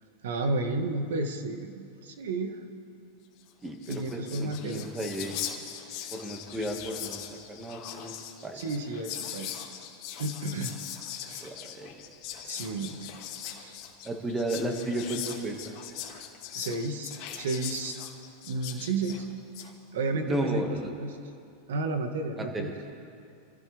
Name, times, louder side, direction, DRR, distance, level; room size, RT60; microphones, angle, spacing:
voice 1, 0.2-2.6 3.9-4.9 8.5-9.6 10.2-10.8 11.3-11.5 12.4-13.1 13.6-13.8 16.5-17.9 18.4-19.3 19.6-21.2 21.7-22.7, right 3 dB, 85° right, 6 dB, 1.7 m, -32 dB
Whispering, 3.5-3.6 3.7-19.7, left 10 dB, 50° left, 1.8 m, -40 dB
voice 2, 3.6-5.4 6.1-8.1 8.4-8.6 11.4-11.9 14.0-15.6 20.3-20.9 22.5-22.7, right 1 dB, 15° right, 2 dB, 1.9 m, -33 dB
26.5 x 15.0 x 3.5 m, 2.5 s
supercardioid pair, 140°, 0 cm